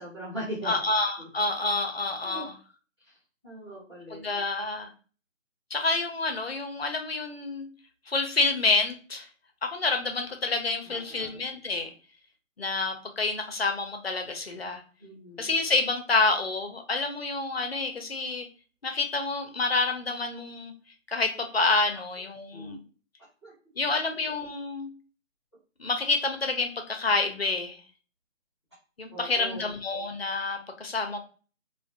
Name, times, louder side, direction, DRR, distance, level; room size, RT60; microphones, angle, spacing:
voice 1, 0.0-0.7 1.2-1.3 2.2-2.5 3.0-3.2 3.4-4.2 10.8-11.4 15.0-15.5 22.5-22.8 23.4-23.5 29.1-29.7, right 1 dB, 20° right, -12 dB, 0.6 m, -40 dB
voice 2, 0.7-2.5 4.1-4.9 5.7-7.7 8.1-9.3 9.6-11.9 12.6-14.8 15.4-18.5 18.8-20.7 21.1-22.8 23.8-24.9 25.8-27.8 29.0-31.2, left 3 dB, 50° left, 5 dB, 0.4 m, -28 dB
2.3 x 2.1 x 2.5 m, 0.39 s
figure-of-eight pair, 165°, 40 cm